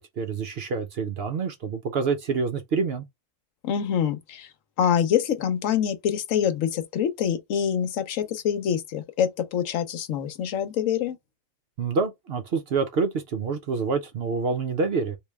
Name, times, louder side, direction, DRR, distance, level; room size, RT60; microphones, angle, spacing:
voice 1, 0.2-3.1 11.8-15.2, right 4 dB, 60° right, 0.8 m, -27 dB
voice 2, 3.6-4.5 4.8-11.2, left 9 dB, 80° left, 1.1 m, -25 dB
3.1 x 2.6 x 3.4 m
omnidirectional pair, 1.4 m